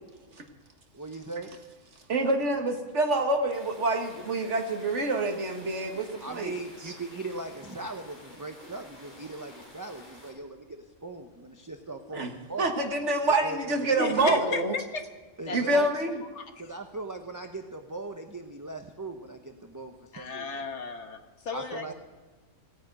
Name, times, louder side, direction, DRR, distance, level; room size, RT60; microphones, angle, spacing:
voice 1, 0.9-1.6 6.2-12.7 13.2-14.2 15.4-15.9 16.6-20.5 21.5-21.9, right 2 dB, 15° right, 5 dB, 0.8 m, -39 dB
voice 2, 2.1-6.5 12.1-12.3 12.6-14.7 15.5-16.2 21.9-22.0, right 2 dB, 65° right, 4 dB, 1.9 m, -27 dB
sound 1, 3.5-10.3, equal, 35° left, 4.8 m, -51 dB
voice 3, 14.0-15.0 15.5-15.8 16.4-16.5 20.1-21.9, left 4 dB, 60° left, 6 dB, 1.5 m, -34 dB
17.0 x 9.6 x 7.6 m, 1.3 s
omnidirectional pair, 1.3 m